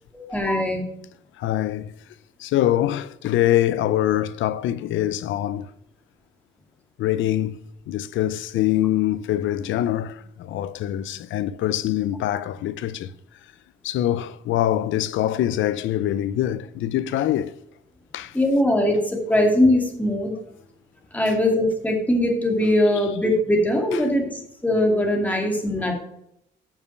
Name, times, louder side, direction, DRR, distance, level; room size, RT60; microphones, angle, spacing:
voice 1, 0.1-0.8 18.3-20.3 21.1-24.3 24.6-25.9, left 1 dB, 10° left, 2.3 m, -21 dB
voice 2, 1.4-1.9 2.4-5.7 7.0-7.6 7.9-13.1 13.8-17.5 18.1-18.3 21.3-21.4 23.9-24.0 25.8-25.9, left 12 dB, 80° left, 0.5 m, -24 dB
6.7 x 5.7 x 6.5 m
cardioid pair, 90°, 20 cm